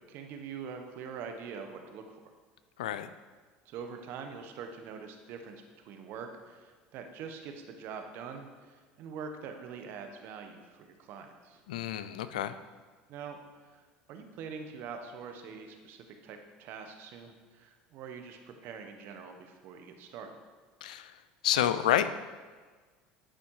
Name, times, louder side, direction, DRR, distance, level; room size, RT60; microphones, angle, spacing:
voice 1, 0.1-2.3 3.6-11.6 13.1-13.4 13.6-13.8 14.1-20.3, right 6 dB, 60° right, 5 dB, 1.2 m, -44 dB
voice 2, 2.8-3.1 11.7-12.5 20.8-21.1 21.4-22.1, left 11 dB, 90° left, 12 dB, 0.4 m, -29 dB
10.5 x 5.1 x 4.8 m, 1.4 s
supercardioid pair, 90°, 4 cm